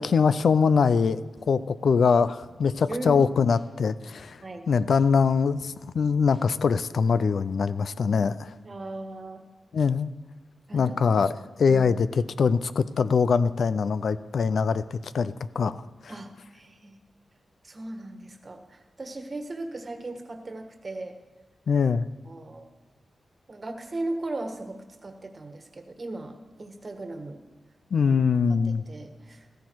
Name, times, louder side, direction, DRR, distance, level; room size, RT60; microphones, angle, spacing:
voice 1, 0.0-4.4 4.7-8.5 9.7-10.1 10.7-11.3 11.6-15.8 21.7-22.1 27.9-28.8, left 5 dB, 70° left, 15 dB, 0.5 m, -23 dB
sound 1, 1.4-7.0, equal, 20° left, 4.1 m, -55 dB
voice 2, 8.6-9.4 10.7-11.0 11.7-11.8 16.1-17.0 17.6-21.1 22.3-22.7 23.5-27.4 28.0-28.1 28.9-29.4, right 2 dB, 35° right, 5 dB, 1.5 m, -37 dB
14.5 x 14.0 x 4.7 m, 1.3 s
wide cardioid pair, 95°, 0 cm